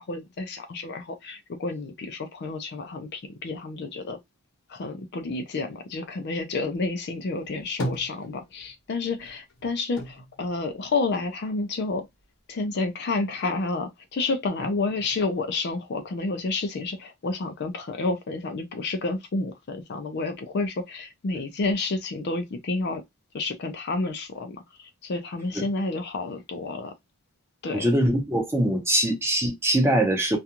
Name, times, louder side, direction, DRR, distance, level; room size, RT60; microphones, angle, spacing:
voice 1, 0.0-4.2 4.7-12.1 12.5-23.0 23.3-26.9 27.6-27.9, left 3 dB, 50° left, 0.4 m, -30 dB
sound 1, 7.3-8.8 9.1-11.5 11.9-12.8, equal, 70° left, 0.9 m, -37 dB
voice 2, 27.7-30.4, right 1 dB, 10° right, 0.7 m, -22 dB
2.4 x 2.3 x 2.8 m
head